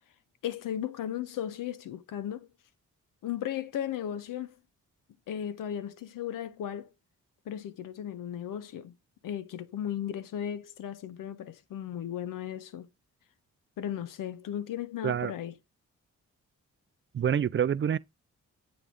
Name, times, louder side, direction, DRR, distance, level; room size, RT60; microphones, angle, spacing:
voice 1, 0.4-2.5 3.2-4.6 5.3-6.9 7.5-8.9 9.2-12.9 13.8-15.6, left 10 dB, 85° left, 0.6 m, -36 dB
voice 2, 17.1-18.0, right 8 dB, 40° right, 0.4 m, -26 dB
7.8 x 3.6 x 3.5 m
cardioid pair, 65°, 31 cm